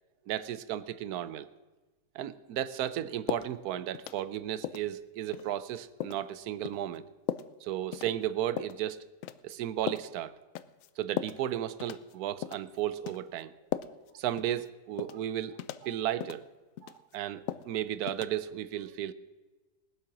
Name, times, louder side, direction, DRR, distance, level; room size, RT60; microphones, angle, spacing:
voice 1, 0.3-1.5 2.1-7.0 7.6-9.1 9.4-10.3 11.0-13.5 14.1-16.5 16.9-19.1, right 11 dB, 70° right, 16 dB, 1.0 m, -34 dB
sound 1, 3.3-3.5 3.9-4.4 4.6-4.9 5.3-5.5 6.0-6.2 6.6-6.8 7.3-7.5 7.9-8.1 8.6-8.8 9.2-9.5 9.9-10.1 10.6-10.9 11.2-11.4 11.8-12.1 12.4-12.7 13.1-13.2 13.7-14.1 14.4-14.5 15.0-15.2 15.6-15.8 16.2-16.4 16.8-17.1 17.5-17.7 18.1-18.3, left 11 dB, 70° left, 0.7 m, -36 dB
19.5 x 7.9 x 6.0 m, 1.2 s
omnidirectional pair, 1.9 m